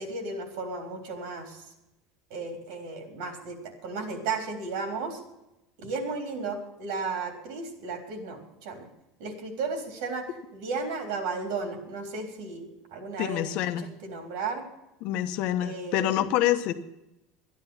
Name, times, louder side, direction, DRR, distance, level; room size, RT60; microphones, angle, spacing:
voice 1, 0.0-1.6 2.3-5.2 5.8-8.9 9.2-10.3 10.5-13.5 13.8-14.7 15.6-16.3, right 4 dB, 80° right, 5 dB, 3.5 m, -34 dB
voice 2, 13.2-13.9 15.0-16.7, left 12 dB, 55° left, 10 dB, 1.0 m, -26 dB
12.5 x 10.5 x 7.2 m, 0.91 s
cardioid pair, 145°, 2 cm